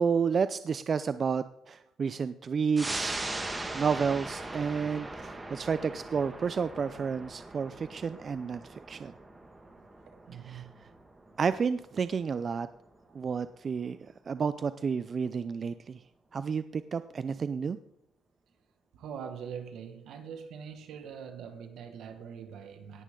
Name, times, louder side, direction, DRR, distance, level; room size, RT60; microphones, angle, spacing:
voice 1, 0.0-3.2 3.7-9.1 10.4-10.7 11.4-12.7 13.1-14.0 14.3-16.0 16.3-17.8, right 6 dB, 45° right, 13 dB, 0.4 m, -31 dB
sound 1, 2.8-13.7 14.1-14.2, right 2 dB, 20° right, 1.8 m, -40 dB
voice 2, 10.3-10.8 18.9-23.0, right 7 dB, 80° right, 6 dB, 1.8 m, -43 dB
17.5 x 10.0 x 3.8 m, 0.81 s
cardioid pair, 90°, 0 cm